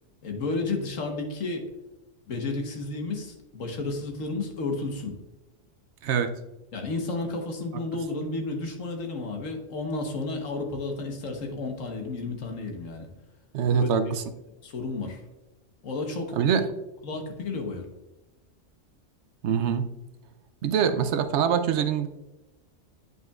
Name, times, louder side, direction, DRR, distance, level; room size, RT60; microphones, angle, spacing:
voice 1, 0.2-1.6 2.3-5.2 6.7-13.1 13.8-13.9 14.6-15.2 15.8-16.3 17.0-17.8, left 3 dB, 90° left, 3 dB, 1.5 m, -32 dB
voice 2, 6.0-6.4 13.5-14.2 16.3-16.7 19.4-19.9 20.6-22.1, right 7 dB, 70° right, 9 dB, 0.8 m, -24 dB
9.3 x 5.5 x 2.3 m, 1.0 s
omnidirectional pair, 1.3 m